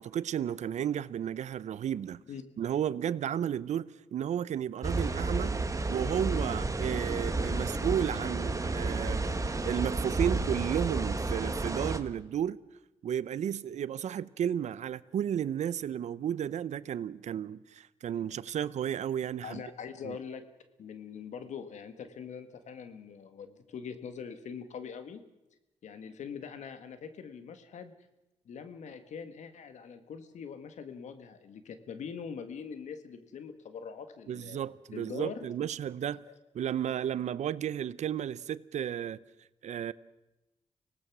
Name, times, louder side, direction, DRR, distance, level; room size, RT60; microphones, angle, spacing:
voice 1, 0.0-2.2 2.6-5.6 5.9-9.3 9.6-12.6 13.0-19.6 20.0-20.2 34.3-36.2 36.5-39.2 39.6-39.9, right 9 dB, 75° right, 0.7 m, -33 dB
sound 1, 4.8-12.0, right 3 dB, 25° right, 1.6 m, -31 dB
voice 2, 19.4-20.4 20.8-25.2 25.8-27.9 28.4-34.6 34.9-35.4 36.3-36.4, left 6 dB, 80° left, 1.7 m, -43 dB
25.5 x 18.5 x 6.1 m
cardioid pair, 65°, 12 cm